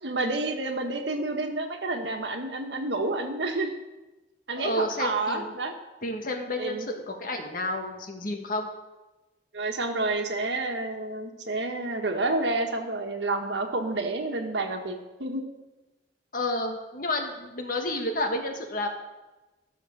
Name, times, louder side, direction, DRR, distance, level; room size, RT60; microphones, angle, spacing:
voice 1, 0.0-3.7 4.5-5.7 6.6-6.9 9.5-15.4, right 2 dB, 85° right, 4 dB, 1.5 m, -29 dB
voice 2, 4.6-5.5 6.0-8.7 16.3-18.9, left 1 dB, 55° left, 3 dB, 1.7 m, -30 dB
14.0 x 6.6 x 6.5 m, 1.1 s
head